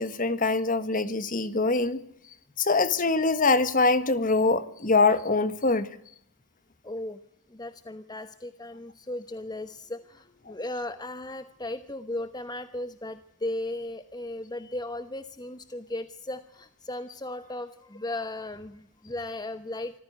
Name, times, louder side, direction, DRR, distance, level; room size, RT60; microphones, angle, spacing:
voice 1, 0.0-2.0 2.6-5.9, left 3 dB, 40° left, 1.5 m, -23 dB
voice 2, 6.8-7.2 7.5-20.0, left 1 dB, 20° left, 1.0 m, -36 dB
25.5 x 15.0 x 9.4 m
head